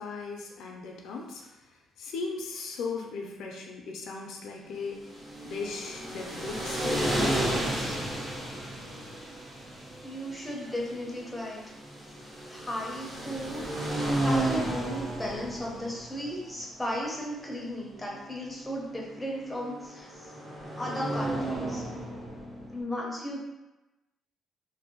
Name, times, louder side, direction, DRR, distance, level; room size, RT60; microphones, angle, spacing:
voice 1, 0.0-5.0 5.4-8.0, left 4 dB, 85° left, 0 dB, 0.4 m, -38 dB
sound 1, 4.9-22.8, right 1 dB, 45° right, 1.3 m, -34 dB
voice 2, 10.0-11.6 12.5-13.6 14.2-20.3 20.8-21.9 22.7-23.4, equal, 5° left, -3 dB, 0.6 m, -35 dB
2.6 x 2.0 x 2.9 m, 1.0 s
cardioid pair, 125°, 0 cm